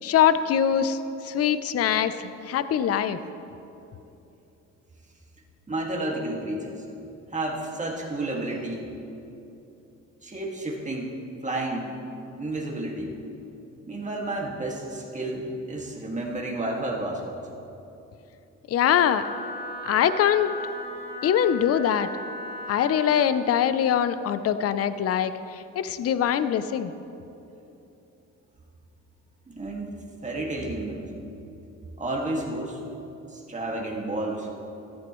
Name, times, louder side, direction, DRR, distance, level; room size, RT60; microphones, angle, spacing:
voice 1, 0.0-1.0 1.2-3.2 18.7-19.2 19.8-20.5 21.2-22.1 22.7-26.9, left 9 dB, 50° left, 12 dB, 0.6 m, -23 dB
voice 2, 5.7-6.8 7.3-8.9 10.2-11.9 12.4-13.2 13.8-17.4 29.5-29.9 30.2-31.1 32.0-32.8 33.3-34.5, right 2 dB, 25° right, -1 dB, 2.0 m, -31 dB
Wind instrument woodwind instrument, 19.1-23.3, left 1 dB, 30° left, 2.7 m, -37 dB
15.0 x 12.5 x 3.1 m, 2.9 s
cardioid pair, 90°, 30 cm